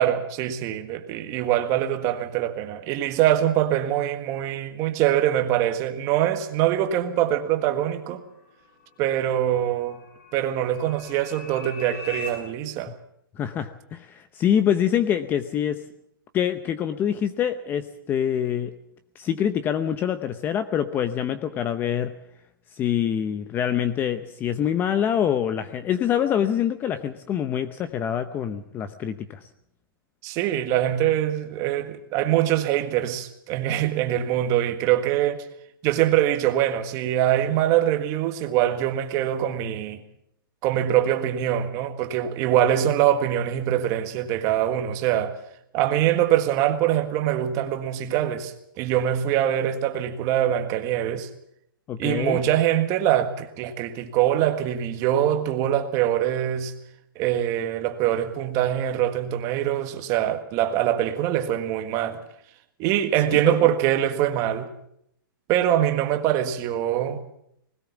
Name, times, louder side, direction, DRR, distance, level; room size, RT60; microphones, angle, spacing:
voice 1, 0.0-8.2 9.0-10.0 10.3-12.9 30.2-35.4 35.8-40.0 40.6-45.3 45.7-51.3 52.0-56.7 57.1-62.2 62.8-64.7 65.5-67.2, right 11 dB, 25° right, 1.6 m, -23 dB
sound 1, 8.0-12.3, left 5 dB, 40° left, 7.5 m, -42 dB
voice 2, 13.4-15.8 16.3-18.7 19.2-22.1 22.8-29.4 51.9-52.4 63.3-63.6, left 9 dB, 15° left, 0.7 m, -25 dB
20.0 x 18.0 x 7.2 m
hypercardioid pair, 160°, 12 cm